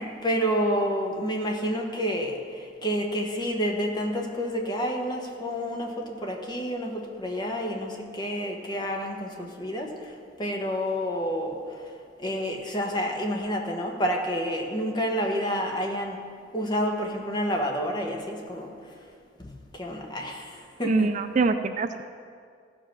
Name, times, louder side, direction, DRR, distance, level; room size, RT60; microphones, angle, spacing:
voice 1, 0.2-9.9 10.4-11.6 12.2-16.2 16.5-18.7 19.4-21.2, equal, 25° left, 2 dB, 1.1 m, -29 dB
voice 2, 20.8-22.0, right 4 dB, 40° right, 9 dB, 0.3 m, -24 dB
15.0 x 5.2 x 5.9 m, 2.2 s
head